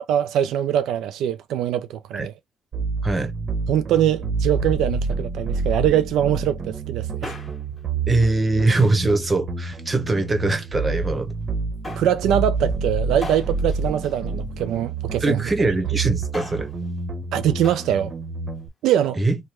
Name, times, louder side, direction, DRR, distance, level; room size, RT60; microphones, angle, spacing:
voice 1, 0.1-2.3 3.7-7.4 12.0-15.4 17.3-18.1 18.8-19.2, right 10 dB, 85° right, 0.4 m, -22 dB
sound 1, 2.7-18.7, right 4 dB, 50° right, 0.9 m, -28 dB
Male speech man speaking, 7.0-7.8 8.8-9.1 9.9-10.7 11.8-12.2 13.2-14.9 16.1-16.8 17.6-18.0 18.2-18.3, left 3 dB, 25° left, 1.4 m, -39 dB
voice 2, 8.1-11.3 15.2-16.7 19.2-19.4, right 2 dB, 25° right, 1.0 m, -22 dB
3.2 x 2.2 x 2.9 m
cardioid pair, 90°, 0 cm